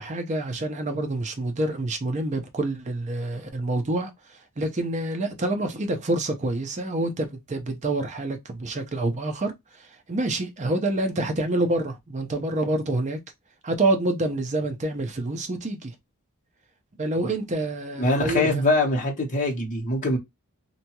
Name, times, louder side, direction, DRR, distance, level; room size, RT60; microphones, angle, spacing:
voice 1, 0.0-13.2 13.6-15.9 17.0-18.6, right 2 dB, 35° right, 0.6 m, -27 dB
voice 2, 18.0-20.2, left 2 dB, 35° left, 0.8 m, -23 dB
2.7 x 2.2 x 2.8 m
head